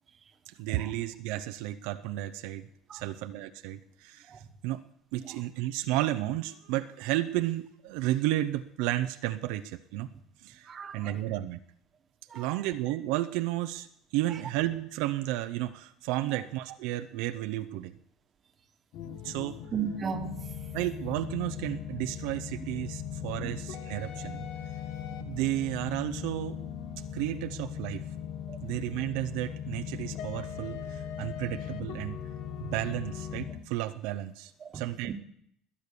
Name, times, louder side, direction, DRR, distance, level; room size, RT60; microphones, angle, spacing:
voice 1, 0.5-2.7 2.9-4.8 5.1-10.1 10.4-11.6 12.3-13.9 14.1-17.9 19.2-19.6 20.7-24.5 25.2-26.6 27.1-28.1 28.6-32.2 32.6-35.1, right 15 dB, 75° right, 0.7 m, -32 dB
voice 2, 10.7-11.1 12.3-12.6 19.7-20.6 23.4-23.6 28.5-28.6 34.6-34.8, right 7 dB, 25° right, 1.4 m, -35 dB
sound 1, 18.9-33.6, left 8 dB, 60° left, 1.5 m, -39 dB
21.0 x 8.6 x 6.8 m
cardioid pair, 155°, 0 cm